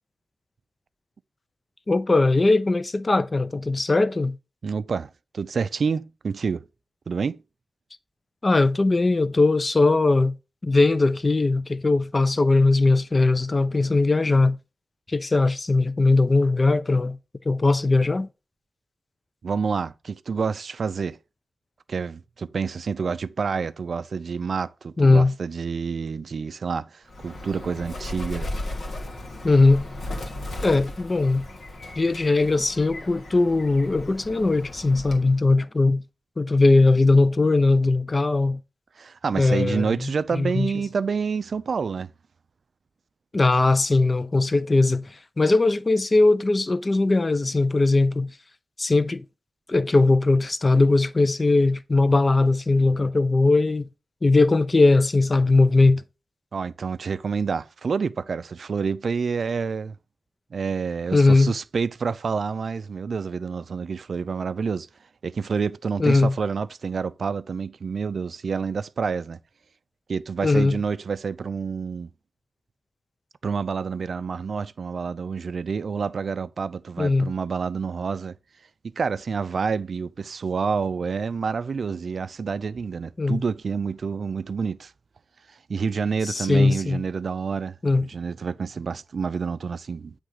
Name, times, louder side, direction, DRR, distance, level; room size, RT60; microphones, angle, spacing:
voice 1, 1.9-4.4 8.4-10.3 10.6-14.6 15.1-17.2 17.5-18.3 25.0-25.3 29.4-29.8 30.6-31.5 32.0-36.0 36.4-38.6 39.3-40.7 43.3-48.3 48.8-49.2 49.7-53.9 54.2-56.0 61.1-61.5 66.0-66.3 70.4-70.8 77.0-77.3 83.2-83.4 86.2-87.0 87.8-88.0, left 3 dB, 30° left, 0.4 m, -20 dB
voice 2, 4.6-6.6 7.1-7.4 19.4-21.2 21.9-28.5 39.0-42.1 56.5-60.0 60.5-64.9 65.2-69.4 70.1-72.1 73.4-78.4 79.0-84.9 85.7-87.8 88.1-90.1, right 5 dB, 65° right, 0.3 m, -28 dB
Bird, 27.1-35.4, left 1 dB, 75° left, 1.4 m, -36 dB
7.9 x 3.3 x 4.9 m
wide cardioid pair, 115°, 0 cm